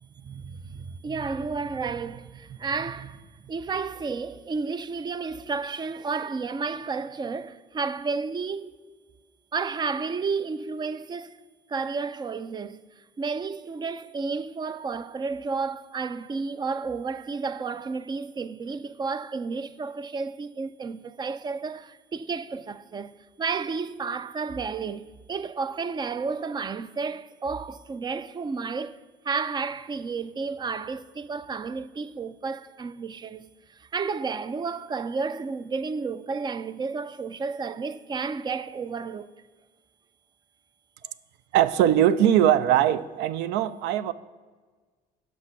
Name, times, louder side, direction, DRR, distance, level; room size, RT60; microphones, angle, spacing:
voice 1, 0.0-8.7 9.5-11.4 11.7-12.8 13.2-29.0 29.2-39.3, right 4 dB, 25° right, 0.4 m, -32 dB
voice 2, 41.5-44.1, right 11 dB, 85° right, 0.4 m, -21 dB
8.1 x 5.9 x 5.9 m
cardioid pair, 110°, 17 cm